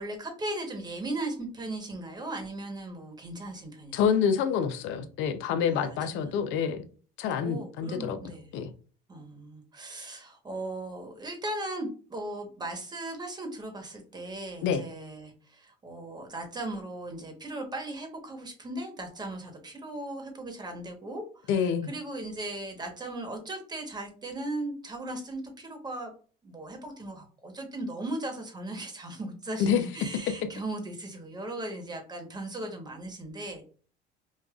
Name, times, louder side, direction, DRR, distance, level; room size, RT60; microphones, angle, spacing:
voice 1, 0.0-4.0 5.7-6.3 7.3-8.6 9.1-26.1 26.4-33.6, right 2 dB, 20° right, 1.2 m, -37 dB
voice 2, 3.9-6.8 7.2-8.7 14.6-14.8 21.5-21.9 29.6-29.8, left 7 dB, 70° left, 0.6 m, -27 dB
5.1 x 2.4 x 2.4 m
cardioid pair, 115°, 20 cm